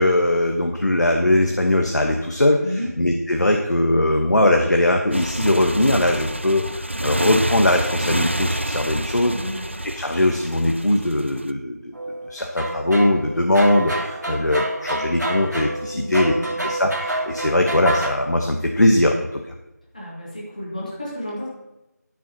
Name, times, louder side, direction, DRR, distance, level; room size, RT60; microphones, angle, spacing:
voice 1, 0.0-9.3 9.8-11.9 12.3-16.3 16.6-19.4, left 1 dB, 75° left, 3 dB, 1.0 m, -20 dB
Motorcycle, 5.1-11.5, right 1 dB, 40° right, 0.4 m, -27 dB
voice 2, 9.3-9.6 15.9-16.6 19.9-21.5, left 1 dB, 25° left, -5 dB, 2.2 m, -31 dB
sound 1, 11.9-18.1, right 1 dB, 75° right, 2.0 m, -28 dB
13.0 x 6.1 x 2.8 m, 0.96 s
figure-of-eight pair, 175°, 10 cm